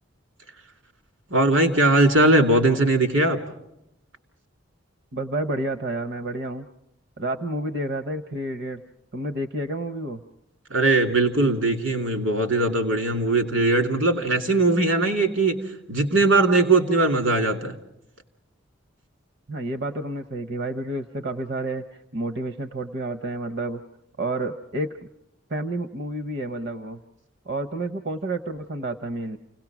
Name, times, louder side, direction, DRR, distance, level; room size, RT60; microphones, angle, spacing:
voice 1, 1.3-3.4 10.7-15.6 15.9-17.8, right 2 dB, 80° right, 4 dB, 2.6 m, -20 dB
voice 2, 5.1-6.7 7.2-8.8 9.1-10.2 19.5-23.8 24.2-24.9 25.5-27.0 27.5-29.4, right 2 dB, 50° right, 8 dB, 0.7 m, -30 dB
29.0 x 18.0 x 6.0 m, 0.85 s
head